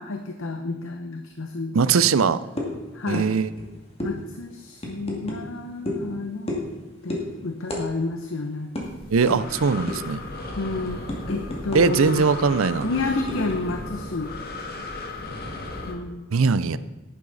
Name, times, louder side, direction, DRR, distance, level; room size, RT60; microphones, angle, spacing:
voice 1, 0.0-2.1 2.9-3.4 4.0-6.6 7.0-8.7 10.5-11.0 11.3-12.3 12.8-14.4 15.9-16.3, left 3 dB, 75° left, 5 dB, 0.8 m, -30 dB
voice 2, 1.7-2.4 3.1-3.5 9.1-10.2 11.7-12.9 16.3-16.8, right 5 dB, 80° right, 15 dB, 0.5 m, -20 dB
sound 1, 2.6-2.8 3.1-3.3 3.5-3.7 4.0-4.1 4.8-5.4 5.8-6.0 6.5-6.7 7.1-7.3 7.7-7.8 8.1-8.3 8.7-8.8 9.3-9.4 9.9-10.1 10.5-12.0 12.3-12.4 12.8-13.8, left 2 dB, 30° left, 2.3 m, -30 dB
Breathing, 8.8-15.9, left 2 dB, 50° left, 1.8 m, -36 dB
11.0 x 10.5 x 4.0 m, 1.1 s
head